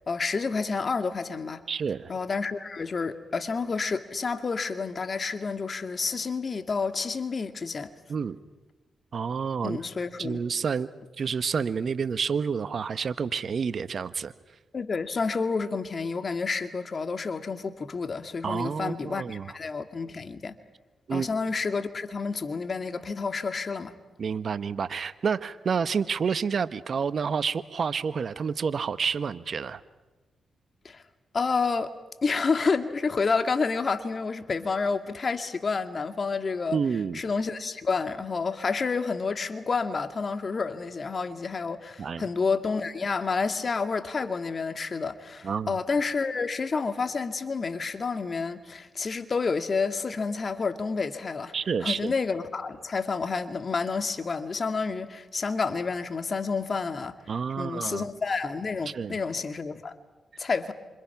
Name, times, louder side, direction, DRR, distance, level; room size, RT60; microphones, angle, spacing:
voice 1, 0.1-1.6 2.1-7.9 9.6-10.4 14.7-20.5 21.1-23.9 30.8-31.0 31.3-31.9 32.2-36.8 37.1-51.5 51.8-57.1 57.6-60.0 60.4-60.7, left 4 dB, 50° left, 2.0 m, -29 dB
voice 2, 1.7-2.1 8.1-8.4 9.1-9.8 10.2-10.9 11.2-14.3 18.4-19.5 21.1-21.3 24.2-29.8 36.7-37.2 42.0-42.3 45.4-45.8 51.5-52.1 57.3-58.0 58.9-59.2, right 6 dB, 60° right, 1.0 m, -29 dB
27.5 x 26.5 x 6.0 m
supercardioid pair, 50°, 0 cm